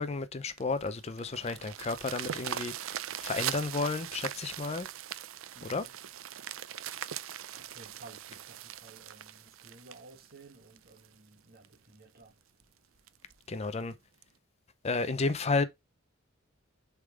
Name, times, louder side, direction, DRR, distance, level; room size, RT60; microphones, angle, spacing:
voice 1, 0.0-4.9 5.6-5.9 13.5-13.9 14.8-15.6, left 3 dB, 30° left, 0.5 m, -32 dB
sound 1, 0.6-11.1 11.6-11.7 12.2-12.3 12.6-12.7 13.1-13.3 14.2-14.3, right 10 dB, 85° right, 0.5 m, -40 dB
voice 2, 5.5-5.9 7.6-12.3, right 3 dB, 50° right, 1.5 m, -55 dB
6.5 x 3.7 x 4.9 m
head